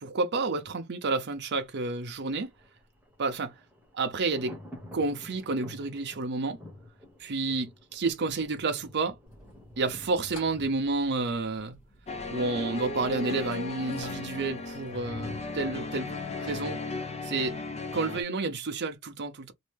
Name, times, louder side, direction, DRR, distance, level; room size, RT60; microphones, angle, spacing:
voice 1, 0.0-2.5 3.2-3.5 3.9-4.6 4.9-6.6 7.2-7.7 7.9-9.2 9.8-11.8 12.3-16.1 16.4-16.8 17.2-17.5 17.9-19.5, right 3 dB, 50° right, 0.6 m, -30 dB
Thunder, 1.4-12.3 12.6-12.7, left 1 dB, 10° right, 1.1 m, -50 dB
sound 1, 9.3-16.6, left 1 dB, 65° left, 2.1 m, -54 dB
sound 2, 12.1-18.2, left 3 dB, 30° left, 0.5 m, -36 dB
3.1 x 2.6 x 3.3 m
head